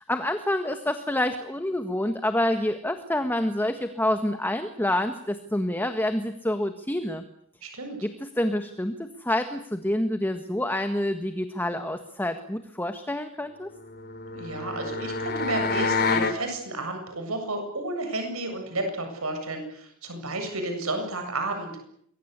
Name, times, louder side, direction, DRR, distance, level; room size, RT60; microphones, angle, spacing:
voice 1, 0.0-7.2 8.0-13.7, left 1 dB, 10° left, 8 dB, 1.7 m, -27 dB
voice 2, 7.6-8.0 14.3-21.8, right 2 dB, 75° right, 5 dB, 7.8 m, -32 dB
sound 1, 13.8-16.4, left 4 dB, 50° left, 3.8 m, -27 dB
28.0 x 23.5 x 8.3 m, 0.69 s
head